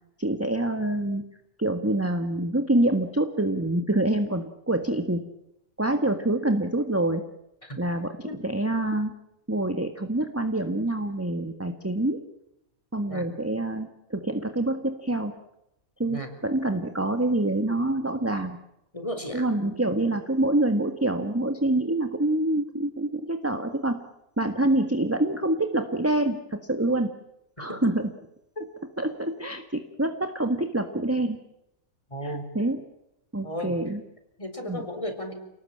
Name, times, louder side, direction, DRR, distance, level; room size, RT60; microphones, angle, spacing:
voice 1, 0.2-1.2 1.6-5.2 5.8-7.2 7.8-9.1 9.5-12.2 12.9-15.3 16.0-18.6 19.3-24.0 24.4-27.1 27.6-28.1 29.0-31.4 32.2-32.8 33.3-34.0 34.6-34.8, right 1 dB, 10° right, 6 dB, 1.6 m, -26 dB
voice 2, 18.9-19.5 27.6-27.9 32.1-32.5 33.4-33.7 34.4-35.3, equal, 20° left, 6 dB, 4.4 m, -34 dB
29.5 x 19.0 x 8.8 m, 0.85 s
omnidirectional pair, 1.5 m